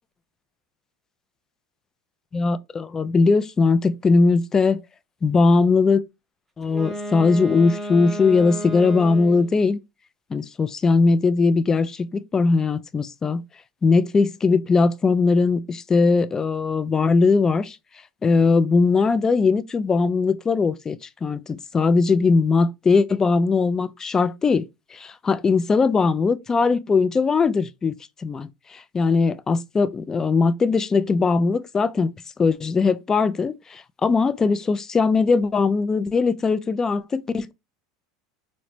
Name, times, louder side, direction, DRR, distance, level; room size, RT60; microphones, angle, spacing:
voice 1, 2.3-4.8 5.2-6.0 6.6-9.8 10.3-13.4 13.8-17.8 18.2-32.1 32.4-37.5, left 4 dB, 20° left, 0.3 m, -20 dB
Wind instrument woodwind instrument, 6.6-9.6, equal, 5° right, 0.8 m, -33 dB
3.9 x 2.0 x 3.1 m
hypercardioid pair, 100°, 2 cm